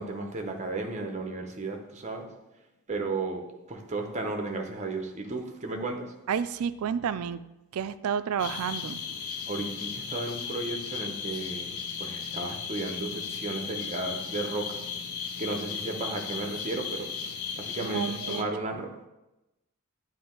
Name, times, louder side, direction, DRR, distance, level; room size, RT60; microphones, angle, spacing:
voice 1, 0.0-2.3 2.9-6.1 9.5-14.8 15.4-18.9, right 2 dB, 30° right, 3 dB, 0.8 m, -34 dB
voice 2, 6.3-7.4 7.7-9.2 17.8-18.8, right 7 dB, 75° right, 13 dB, 0.3 m, -31 dB
sound 1, 8.4-18.4, left 6 dB, 85° left, 0.7 m, -36 dB
9.5 x 3.2 x 4.3 m, 0.99 s
head